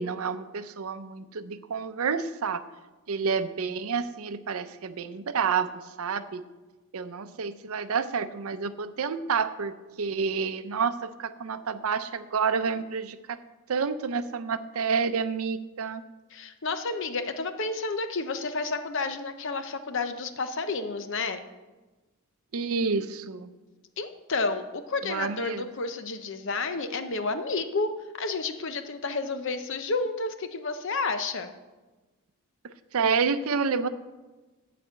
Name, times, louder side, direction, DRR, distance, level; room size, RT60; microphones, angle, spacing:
voice 1, 0.0-2.6 3.1-5.7 6.0-6.5 6.9-13.4 13.7-16.0 22.5-23.5 25.0-25.7 32.9-33.9, right 5 dB, 75° right, 12 dB, 0.6 m, -29 dB
voice 2, 16.3-21.4 24.0-31.5, left 3 dB, 55° left, 9 dB, 0.7 m, -31 dB
12.0 x 4.2 x 8.0 m, 1.2 s
head